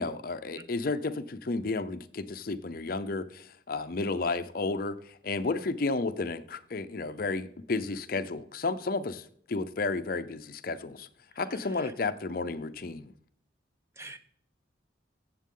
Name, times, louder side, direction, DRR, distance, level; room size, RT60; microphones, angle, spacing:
voice 1, 0.0-11.1 11.4-13.1, left 3 dB, 50° left, 12 dB, 0.5 m, -32 dB
voice 2, 11.3-11.9 14.0-14.2, right 2 dB, 15° right, 9 dB, 0.7 m, -47 dB
15.5 x 7.4 x 3.8 m, 0.64 s
head